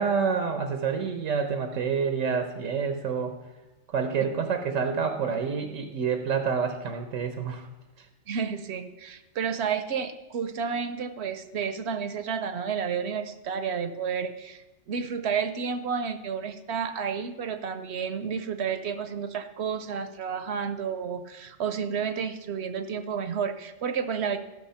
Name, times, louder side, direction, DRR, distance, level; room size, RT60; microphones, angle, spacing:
voice 1, 0.0-3.4 3.9-7.7, right 6 dB, 85° right, 7 dB, 1.2 m, -28 dB
voice 2, 8.3-24.4, right 6 dB, 65° right, 10 dB, 0.9 m, -31 dB
13.0 x 6.2 x 5.7 m, 1.1 s
omnidirectional pair, 1.3 m